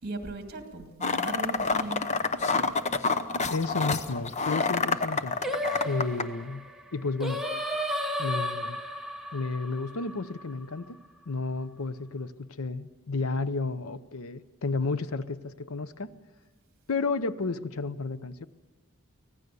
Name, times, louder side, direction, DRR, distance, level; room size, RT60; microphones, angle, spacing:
voice 1, 0.0-2.1, right 2 dB, 50° right, 2.4 m, -38 dB
sound 1, 1.0-6.2, left 4 dB, 35° left, 0.9 m, -28 dB
voice 2, 3.5-5.4 5.8-6.6 6.9-7.4 8.2-8.8 9.3-11.0 11.3-16.1 16.9-18.5, left 3 dB, 85° left, 0.8 m, -32 dB
Singing, 5.4-10.7, equal, ahead, 1.2 m, -33 dB
24.5 x 17.0 x 6.8 m
head